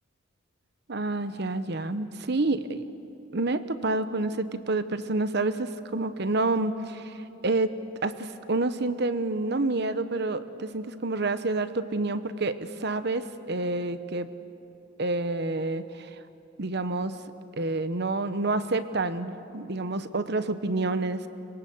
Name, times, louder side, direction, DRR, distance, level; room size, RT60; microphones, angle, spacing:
voice 1, 0.9-2.8 3.3-7.7 8.0-14.3 15.0-16.2 16.6-17.1 17.6-21.3, right 2 dB, 60° right, 11 dB, 1.1 m, -28 dB
25.0 x 22.0 x 8.0 m, 3.0 s
head